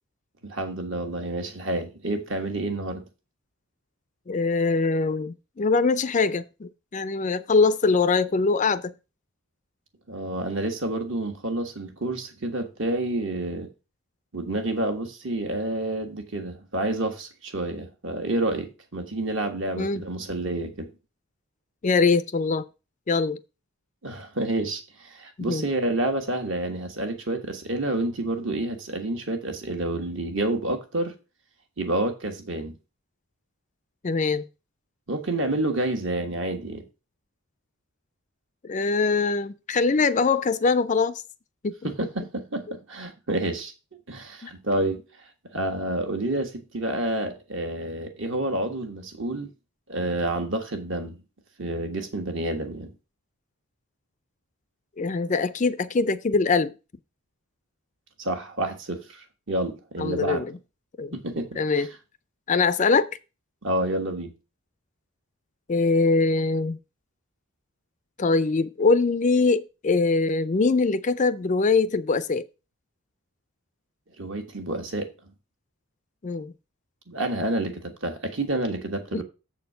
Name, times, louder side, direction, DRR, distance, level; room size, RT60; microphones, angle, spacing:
voice 1, 0.4-3.1 10.1-13.7 14.3-20.9 24.0-31.1 31.8-32.7 35.1-36.8 41.8-43.7 44.1-45.0 45.5-49.5 49.9-51.2 51.6-52.9 58.2-60.4 61.1-61.9 63.6-64.3 74.2-75.1 77.1-79.2, right 1 dB, 60° right, 1.5 m, -29 dB
voice 2, 4.3-8.9 19.8-20.0 21.8-22.6 23.1-23.4 25.4-25.6 34.0-34.4 38.6-41.2 41.6-41.9 42.7-42.8 44.4-44.5 55.0-56.7 60.0-60.5 61.0-61.2 61.6-61.9 62.5-63.1 65.7-66.8 68.2-72.4 76.2-76.5 79.1-79.2, left 4 dB, 35° left, 0.4 m, -23 dB
7.3 x 4.3 x 6.7 m
head